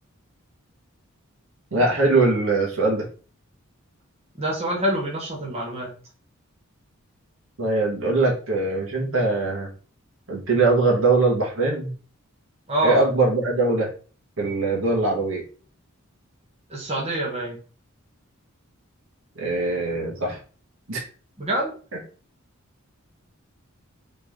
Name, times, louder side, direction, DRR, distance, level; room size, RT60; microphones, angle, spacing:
voice 1, 1.7-3.0 7.6-9.7 10.3-11.9 12.8-13.9 14.4-15.4 19.4-20.4 20.9-21.0, right 3 dB, 65° right, -1 dB, 1.6 m, -21 dB
voice 2, 4.4-5.9 12.7-13.0 16.7-17.6 21.4-21.7, right 1 dB, 30° right, -3 dB, 1.1 m, -26 dB
3.9 x 3.4 x 3.7 m, 0.39 s
head